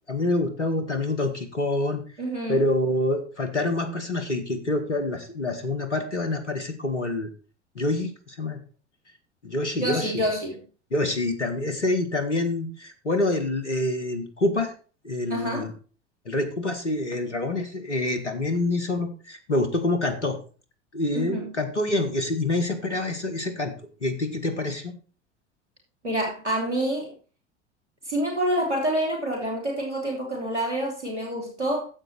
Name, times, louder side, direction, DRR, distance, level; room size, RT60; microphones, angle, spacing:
voice 1, 0.1-2.0 2.5-7.3 7.7-8.6 9.4-10.2 10.9-14.7 15.0-15.7 16.2-20.4 20.9-24.9, left 2 dB, 85° left, 8 dB, 1.6 m, -26 dB
voice 2, 2.2-2.6 9.7-10.6 15.3-15.7 21.1-21.5 26.0-27.1 28.1-31.9, right 1 dB, 90° right, -1 dB, 3.3 m, -27 dB
9.8 x 7.8 x 4.5 m, 0.36 s
figure-of-eight pair, 75°, 34 cm